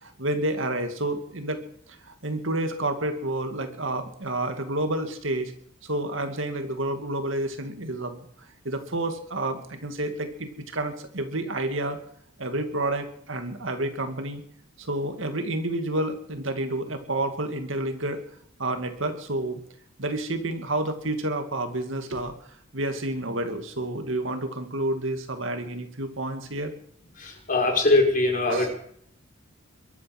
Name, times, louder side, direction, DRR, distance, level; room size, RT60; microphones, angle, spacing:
voice 1, 0.0-1.6 1.9-5.5 5.8-12.0 12.4-14.4 14.8-18.2 18.6-19.6 20.0-22.3 22.7-26.7 28.5-28.8, right 1 dB, 65° right, 6 dB, 2.4 m, -29 dB
voice 2, 27.2-28.8, left 2 dB, 40° left, 2 dB, 5.2 m, -22 dB
23.0 x 9.8 x 6.2 m, 0.63 s
head